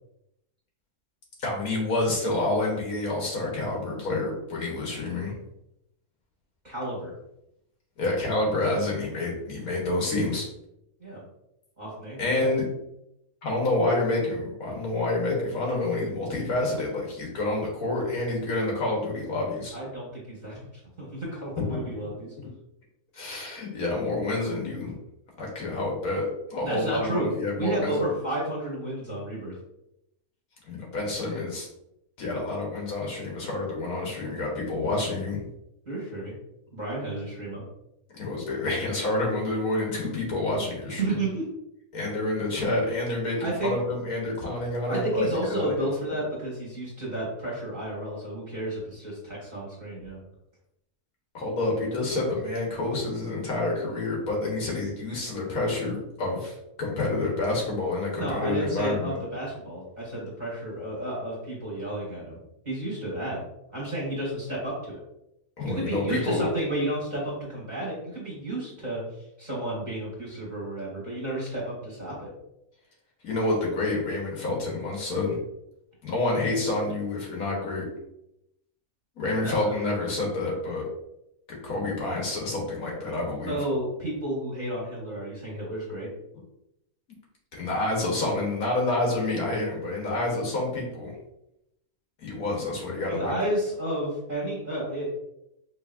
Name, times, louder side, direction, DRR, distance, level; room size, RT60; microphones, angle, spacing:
voice 1, 1.4-5.3 8.0-10.4 12.2-12.6 13.4-19.7 21.6-21.9 23.1-25.0 25.4-27.9 30.7-31.7 32.2-35.4 38.1-41.2 41.9-45.7 51.3-59.2 65.6-66.5 73.2-75.4 76.0-77.9 79.2-80.8 81.5-83.6 87.5-91.1 92.2-93.3, left 2 dB, 80° left, -2 dB, 1.7 m, -28 dB
voice 2, 6.6-7.1 11.0-11.2 11.8-12.2 19.7-20.6 21.0-22.3 26.6-27.3 27.5-29.5 35.8-36.3 36.7-37.6 41.0-41.5 43.4-43.7 44.9-50.2 58.1-62.4 62.6-63.4 63.7-65.0 65.6-69.0 69.4-72.3 79.4-80.0 83.5-86.1 93.1-95.1, right 1 dB, 30° right, -5 dB, 1.7 m, -31 dB
5.2 x 3.0 x 2.6 m, 0.84 s
omnidirectional pair, 1.5 m